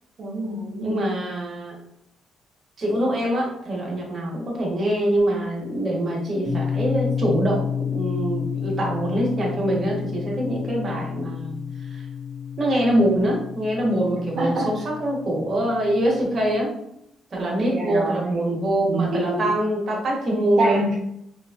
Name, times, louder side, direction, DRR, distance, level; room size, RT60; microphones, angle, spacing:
voice 1, 0.2-1.1 14.4-14.7 17.3-19.5 20.6-20.9, right 2 dB, 65° right, -6 dB, 0.7 m, -27 dB
voice 2, 0.8-1.8 2.8-11.6 11.9-12.0 12.6-16.7 17.3-20.8, right 1 dB, 45° right, -3 dB, 1.1 m, -24 dB
sound 1, 6.4-16.6, left 7 dB, 5° right, 1.4 m, -31 dB
3.0 x 2.5 x 2.3 m, 0.76 s
cardioid pair, 90°, 0 cm